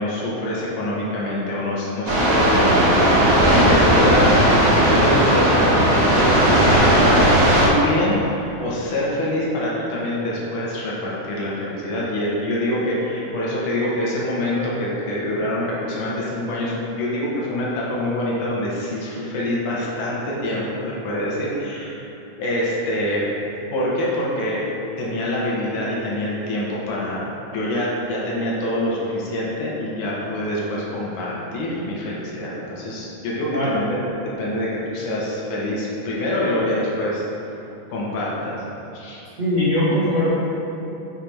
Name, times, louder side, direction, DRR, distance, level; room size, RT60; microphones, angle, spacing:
voice 1, 0.0-4.4 4.7-7.3 7.6-22.0 22.4-23.3 23.7-24.6 25.0-27.2 27.5-37.2 37.9-38.6 38.9-39.2, left 1 dB, 85° left, -5 dB, 2.7 m, -25 dB
sound 1, 2.1-7.7, right 1 dB, 50° right, 2.3 m, -16 dB
voice 2, 33.5-33.8 39.4-40.3, left 1 dB, 30° right, -13 dB, 1.5 m, -20 dB
6.7 x 5.2 x 4.5 m, 3.0 s
omnidirectional pair, 3.5 m